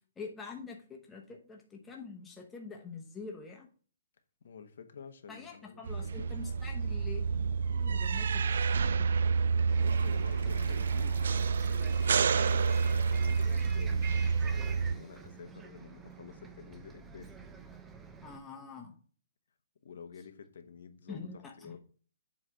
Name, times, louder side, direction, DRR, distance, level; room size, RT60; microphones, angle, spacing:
voice 1, 0.2-3.7 5.3-7.3 7.6-9.1 18.2-19.0 21.1-21.8, left 4 dB, 10° left, 0.9 m, -46 dB
voice 2, 4.4-6.4 7.9-8.0 9.5-11.4 12.4-17.3 19.8-21.3 21.6-21.8, left 6 dB, 65° left, 1.0 m, -50 dB
sound 1, 5.9-14.9, right 5 dB, 65° right, 0.3 m, -29 dB
Bus, 9.7-18.4, right 5 dB, 10° right, 0.5 m, -49 dB
Toilet flush, 9.8-14.2, right 5 dB, 85° right, 0.7 m, -46 dB
7.7 x 3.3 x 5.5 m
hypercardioid pair, 170°, 0 cm